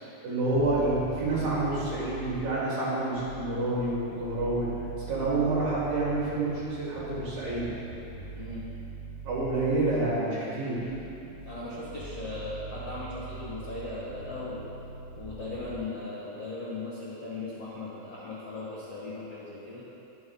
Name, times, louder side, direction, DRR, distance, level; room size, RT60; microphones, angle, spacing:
voice 1, 0.2-4.7 5.1-7.7 9.2-10.9, right 2 dB, 55° right, -8 dB, 3.5 m, -28 dB
sound 1, 0.5-2.7 3.2-10.3 10.8-15.8, right 4 dB, 80° right, 2.8 m, -43 dB
voice 2, 8.1-8.6 11.4-14.7 15.1-19.8, left 3 dB, 60° left, -9 dB, 1.6 m, -38 dB
22.0 x 7.5 x 2.4 m, 2.8 s
omnidirectional pair, 5.7 m